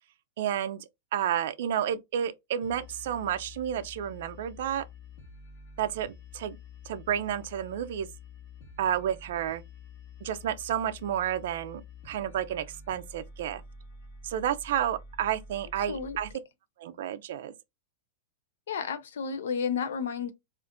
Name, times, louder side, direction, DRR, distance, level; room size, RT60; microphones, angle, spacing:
voice 1, 0.4-4.8 5.8-6.6 6.9-8.1 8.8-9.6 10.2-13.6 14.2-16.3 16.8-17.5, right 10 dB, 50° right, 0.3 m, -31 dB
sound 1, 2.6-16.3, left 4 dB, 30° left, 0.7 m, -48 dB
voice 2, 18.7-20.3, left 6 dB, 75° left, 0.5 m, -32 dB
2.4 x 2.4 x 3.5 m
supercardioid pair, 175°, 0 cm